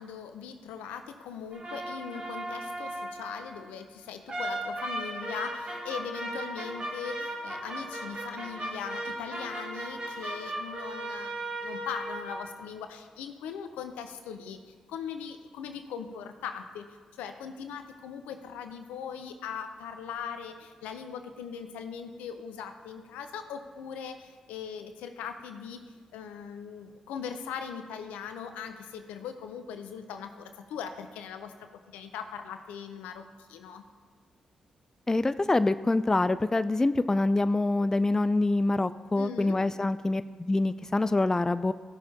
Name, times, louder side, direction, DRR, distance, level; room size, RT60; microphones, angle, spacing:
voice 1, 0.0-16.9 17.1-25.8 26.1-33.8 39.2-39.6, left 7 dB, 85° left, 7 dB, 0.7 m, -40 dB
sound 1, 1.5-3.5 4.3-12.4, right 1 dB, 40° right, 1.9 m, -36 dB
voice 2, 35.1-40.2 40.5-41.7, left 2 dB, 20° left, 13 dB, 0.3 m, -25 dB
15.5 x 6.4 x 2.8 m, 1.4 s
hypercardioid pair, 45°, 2 cm